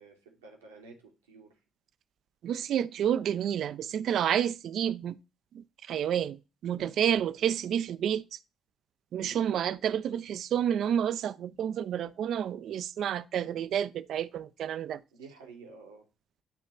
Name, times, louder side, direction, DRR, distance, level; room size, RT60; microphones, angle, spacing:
voice 1, 0.0-1.5 7.1-7.3 9.2-9.4 15.1-16.0, right 4 dB, 75° right, 1.1 m, -50 dB
voice 2, 2.4-5.2 5.5-6.4 6.6-8.2 9.1-15.0, right 9 dB, 55° right, 0.3 m, -29 dB
8.7 x 2.9 x 4.2 m
figure-of-eight pair, 45°, 0 cm